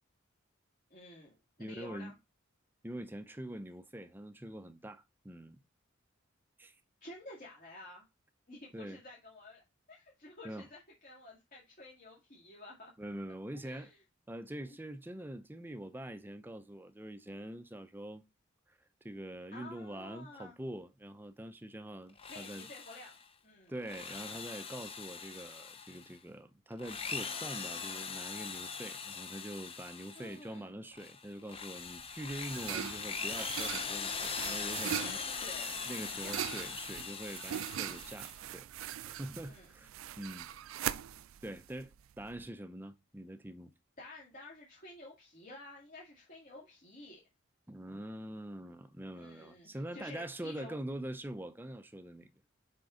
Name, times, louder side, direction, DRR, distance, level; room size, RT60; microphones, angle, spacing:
voice 1, 0.9-1.3 1.6-2.1 7.0-8.0 8.5-12.9 13.5-14.0 19.5-20.5 22.3-23.2 23.4-23.7 30.1-30.7 35.4-35.7 36.2-36.5 39.5-39.7 44.0-47.2 49.1-50.8, left 2 dB, 45° left, 2.0 m, -51 dB
voice 2, 1.6-2.1 2.8-5.6 6.6-6.8 8.7-9.0 10.4-10.7 13.0-13.9 14.3-18.2 18.7-22.7 23.7-35.4 35.9-38.7 39.0-40.5 41.4-43.7 47.7-52.4, right 1 dB, 10° right, 0.5 m, -44 dB
Drill, 22.1-23.2 23.8-26.1 26.7-30.4 30.9-38.4, left 5 dB, 30° left, 0.7 m, -41 dB
sound 1, 32.0-42.5, right 11 dB, 90° right, 0.4 m, -41 dB
6.0 x 5.1 x 3.8 m
head